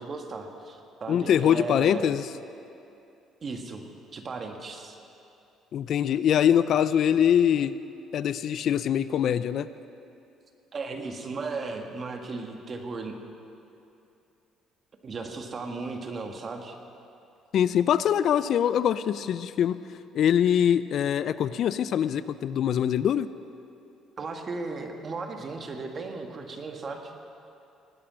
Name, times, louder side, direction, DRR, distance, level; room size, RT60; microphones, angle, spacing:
voice 1, 0.0-2.1 3.4-3.8 4.1-5.0 10.7-13.2 15.0-16.8 24.2-27.1, right 3 dB, 40° right, 4 dB, 1.8 m, -36 dB
voice 2, 1.1-2.3 5.7-7.7 8.1-9.7 17.5-19.8 20.1-23.3, left 9 dB, 60° left, 15 dB, 0.4 m, -23 dB
19.5 x 8.7 x 6.3 m, 2.7 s
cardioid pair, 90°, 0 cm